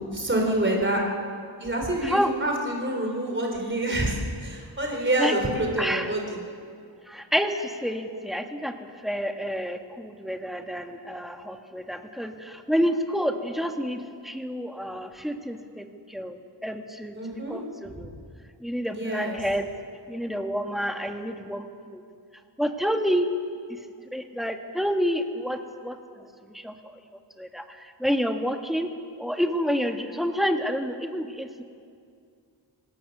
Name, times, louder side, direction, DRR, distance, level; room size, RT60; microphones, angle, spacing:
voice 1, 0.1-1.0 1.6-6.4 17.1-17.6 17.9-18.1 18.9-19.4, right 1 dB, 25° right, 1 dB, 4.1 m, -27 dB
voice 2, 5.8-6.1 7.1-8.7 9.0-18.1 18.6-19.6 20.1-22.0 22.6-23.3 24.1-26.3 26.5-27.0 27.4-28.9 29.2-31.6, equal, ahead, 4 dB, 1.6 m, -29 dB
26.5 x 18.0 x 6.8 m, 2.2 s
wide cardioid pair, 95°, 44 cm